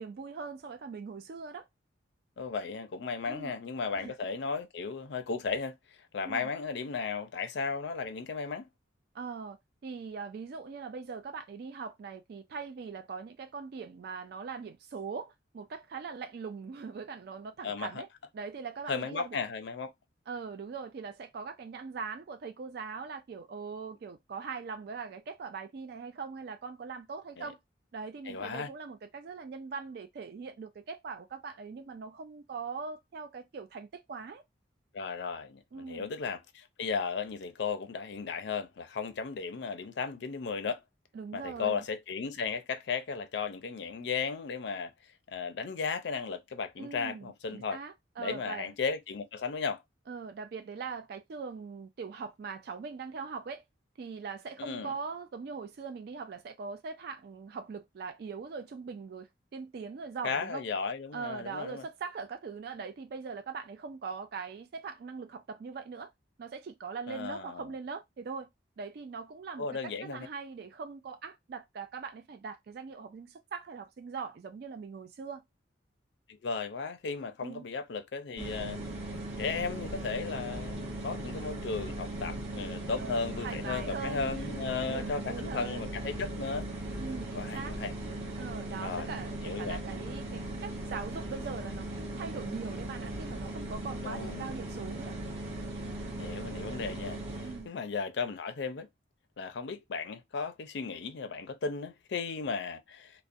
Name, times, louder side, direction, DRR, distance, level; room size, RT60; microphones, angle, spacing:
voice 1, 0.0-1.7 3.3-3.5 3.9-4.1 6.2-6.5 9.1-9.6 9.8-18.1 18.3-19.4 20.3-27.6 27.9-34.4 35.7-36.1 41.1-41.8 46.8-48.7 50.1-53.6 54.0-60.6 61.1-66.1 66.4-68.5 68.8-75.4 77.4-77.7 83.0-85.9 87.0-87.8 88.4-95.2 97.4-97.7, right 5 dB, 55° right, 0.3 m, -41 dB
voice 2, 2.4-5.8 6.1-8.7 17.6-18.0 18.9-19.9 27.4-27.5 28.3-28.7 34.9-40.8 41.3-44.9 45.3-47.8 48.2-49.8 54.6-54.9 60.2-61.8 67.1-67.8 69.6-70.3 76.3-78.8 79.4-86.7 87.3-87.9 88.8-89.2 89.4-89.8 94.0-94.6 96.2-98.9 99.4-103.2, left 5 dB, 60° left, 0.4 m, -35 dB
sound 1, 78.4-97.7, right 1 dB, 35° right, 1.1 m, -38 dB
2.4 x 2.1 x 2.5 m
head